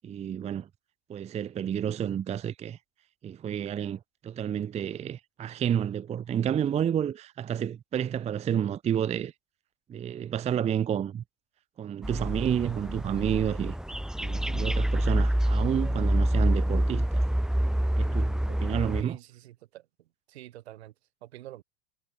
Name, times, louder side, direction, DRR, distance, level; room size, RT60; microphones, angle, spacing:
voice 1, 0.0-0.7 1.1-2.8 3.2-9.3 9.9-11.2 11.8-13.8 14.2-17.2 18.0-19.2, right 9 dB, 20° right, 0.6 m, -30 dB
sound 1, 12.0-19.0, right 1 dB, ahead, 1.3 m, -27 dB
voice 2, 19.0-19.8 20.3-20.9 21.2-21.6, right 14 dB, 75° right, 4.6 m, -46 dB
hypercardioid pair, 100°, 32 cm